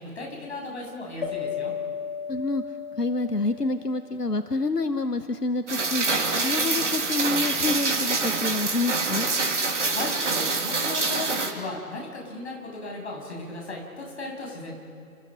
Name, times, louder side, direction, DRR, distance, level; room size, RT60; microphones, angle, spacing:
voice 1, 0.0-1.7 9.8-14.7, left 2 dB, 45° left, 0 dB, 7.6 m, -36 dB
sound 1, 1.2-4.2, left 7 dB, 30° left, 3.7 m, -34 dB
voice 2, 2.3-2.6 3.0-6.0 6.4-9.3, left 3 dB, 90° left, 10 dB, 1.2 m, -27 dB
Rain, 5.7-11.5, right 3 dB, 50° right, 3.1 m, -26 dB
30.0 x 27.5 x 5.3 m, 2.5 s
figure-of-eight pair, 150°, 46 cm